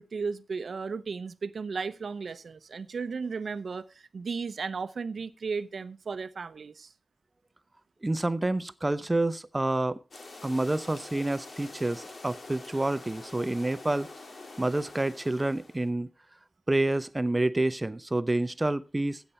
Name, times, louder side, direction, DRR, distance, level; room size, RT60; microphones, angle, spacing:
voice 1, 0.0-6.9, right 5 dB, 90° right, 0.6 m, -35 dB
voice 2, 8.0-10.0 10.4-14.1 14.6-16.1 16.7-19.2, right 2 dB, 25° right, 0.7 m, -28 dB
sound 1, 10.1-15.9, left 2 dB, 70° left, 2.1 m, -46 dB
14.5 x 8.2 x 4.2 m
wide cardioid pair, 80°, 0 cm